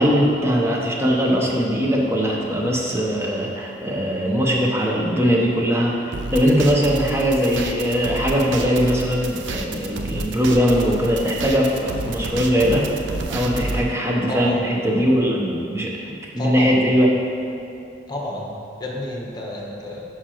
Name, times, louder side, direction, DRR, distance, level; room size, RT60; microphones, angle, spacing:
voice 1, 0.0-12.8 13.3-17.1, equal, 15° right, -2 dB, 0.8 m, -20 dB
sound 1, 6.1-13.8, right 2 dB, 75° right, 0.5 m, -29 dB
voice 2, 13.6-13.9 14.3-14.8 16.4-16.8 18.1-20.0, left 1 dB, 25° left, -2 dB, 0.9 m, -30 dB
9.6 x 4.9 x 3.0 m, 2.6 s
head